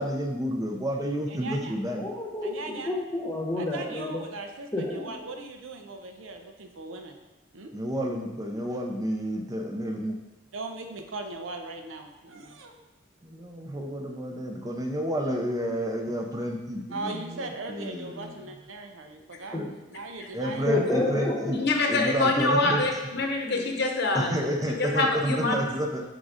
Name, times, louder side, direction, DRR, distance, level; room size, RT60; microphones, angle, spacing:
voice 1, 0.0-2.0 7.7-10.2 13.2-18.5 19.5-19.7 20.3-21.6 21.9-22.8 24.1-26.0, equal, 20° right, 2 dB, 0.5 m, -30 dB
voice 2, 1.3-1.7 2.4-2.9 3.6-7.2 7.5-7.7 10.5-12.8 16.9-19.6 19.9-20.8, right 3 dB, 90° right, 4 dB, 0.7 m, -39 dB
voice 3, 1.9-4.2 4.7-5.0 19.5-19.6 20.7-21.5 23.4-23.5, left 2 dB, 15° left, -2 dB, 1.0 m, -29 dB
voice 4, 21.6-24.3 24.8-25.6, left 2 dB, 60° left, 2 dB, 0.9 m, -25 dB
5.3 x 3.8 x 4.8 m, 1.1 s
head